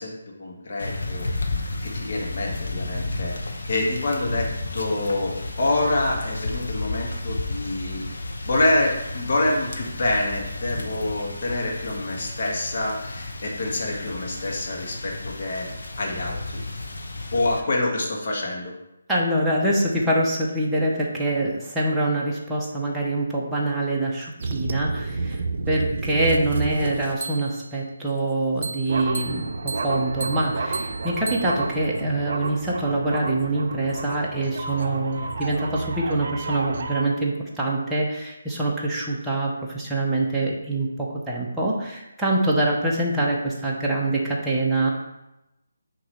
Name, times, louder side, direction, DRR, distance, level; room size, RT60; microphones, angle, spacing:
voice 1, 0.0-1.3 1.8-3.4 3.7-8.0 8.4-15.7 16.0-16.7 17.3-18.7, left 2 dB, 50° left, -1 dB, 1.5 m, -26 dB
sound 1, 0.8-17.6, left 2 dB, 75° left, 0.9 m, -32 dB
voice 2, 19.1-25.4 25.7-44.9, right 2 dB, 5° right, -6 dB, 0.8 m, -25 dB
sound 2, 24.4-27.7 28.6-37.0, right 3 dB, 55° right, 0.6 m, -30 dB
6.0 x 3.0 x 5.5 m, 0.93 s
figure-of-eight pair, 155°, 0 cm